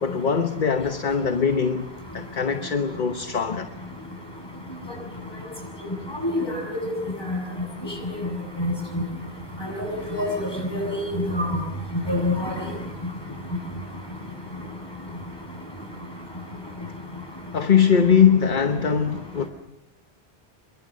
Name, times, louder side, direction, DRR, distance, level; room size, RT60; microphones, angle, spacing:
voice 1, 0.0-3.7 17.5-19.5, left 7 dB, 50° left, 1.2 m, -21 dB
voice 2, 8.6-9.0 9.6-11.6 12.1-12.5, left 1 dB, 25° left, 8.1 m, -26 dB
28.0 x 23.0 x 6.6 m
omnidirectional pair, 1.1 m